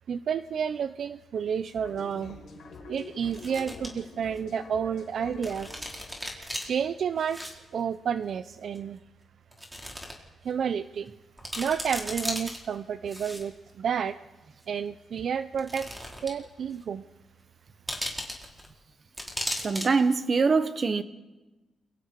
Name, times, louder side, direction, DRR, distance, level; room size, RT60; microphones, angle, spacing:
voice 1, 0.1-2.4 2.9-5.9 6.3-9.0 10.4-11.1 11.6-14.2 14.7-17.0, right 7 dB, 65° right, 0.7 m, -31 dB
sound 1, 1.7-7.5, left 5 dB, 75° left, 4.9 m, -46 dB
sound 2, 1.7-1.8 3.2-3.9 4.4-4.5 5.4-6.6 7.2-7.5 7.8-7.9 8.7-8.8 9.5-10.1 10.5-10.6 11.1-11.2 11.4-12.6 13.1-13.7 14.6-14.7 15.5-16.4 16.7-16.8 17.9-18.7 19.2-19.9 20.1-20.2, equal, 10° right, 4.7 m, -36 dB
voice 2, 19.6-21.0, right 4 dB, 40° right, 1.4 m, -23 dB
29.0 x 23.5 x 4.8 m
cardioid pair, 100°, 0 cm